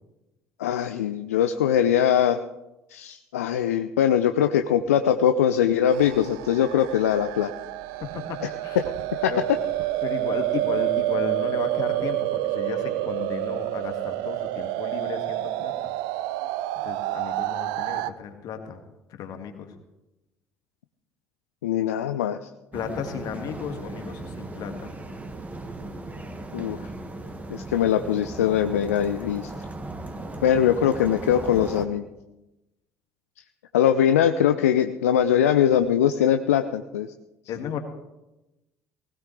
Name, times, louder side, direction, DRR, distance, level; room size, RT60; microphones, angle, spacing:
voice 1, 0.6-2.4 2.9-7.5 9.1-9.3 21.6-22.4 26.5-26.8 27.5-29.5 30.4-32.0 33.7-37.1, left 9 dB, 75° left, 10 dB, 0.5 m, -22 dB
sound 1, 5.9-18.1, right 15 dB, 60° right, 0.5 m, -28 dB
voice 2, 8.0-8.8 9.3-9.4 10.0-15.9 16.8-18.8 19.1-19.7 22.7-24.9 37.5-37.8, left 7 dB, 50° left, 5 dB, 2.1 m, -34 dB
sound 2, 22.7-31.9, right 2 dB, 20° right, 1.8 m, -37 dB
19.0 x 16.5 x 3.3 m, 0.98 s
figure-of-eight pair, 55°, 8 cm